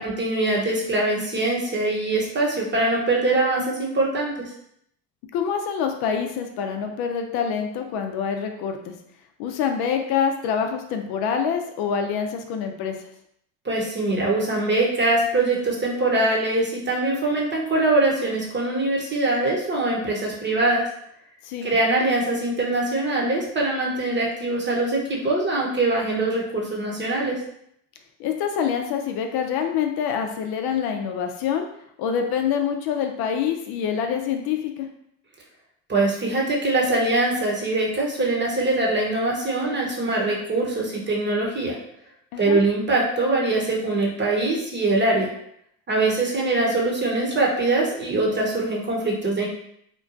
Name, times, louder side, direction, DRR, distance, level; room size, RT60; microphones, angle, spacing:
voice 1, 0.0-4.3 13.6-20.8 21.6-27.4 35.9-41.8 42.4-45.3 45.9-49.5, right 2 dB, 25° right, -2 dB, 0.9 m, -23 dB
voice 2, 5.3-8.9 9.4-13.0 21.4-21.7 28.2-31.7 32.0-34.9 42.3-42.6, left 7 dB, 65° left, 4 dB, 0.5 m, -26 dB
2.9 x 2.2 x 2.5 m, 0.71 s
supercardioid pair, 75°, 40 cm